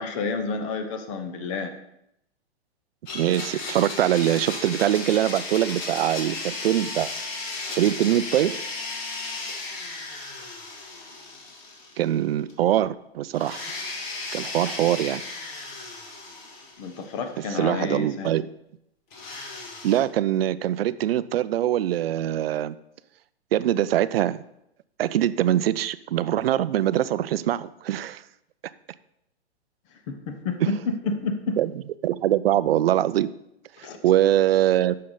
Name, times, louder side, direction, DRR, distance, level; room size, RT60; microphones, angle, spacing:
voice 1, 0.0-1.7 16.8-18.3 30.1-31.6 33.8-34.0, left 4 dB, 30° left, 7 dB, 0.8 m, -30 dB
Domestic sounds home sounds, 3.1-12.2 12.5-12.6 13.3-17.3 19.1-20.0, left 3 dB, 45° left, 2.0 m, -35 dB
voice 2, 3.1-7.1 7.8-8.6 12.0-13.6 14.3-15.2 17.5-18.5 19.8-22.8 23.5-24.4 25.0-28.2 30.6-30.7 31.6-31.7 32.0-33.3 33.8-34.9, right 12 dB, 60° right, 16 dB, 0.5 m, -23 dB
10.0 x 6.4 x 3.9 m, 0.79 s
hypercardioid pair, 160°, 33 cm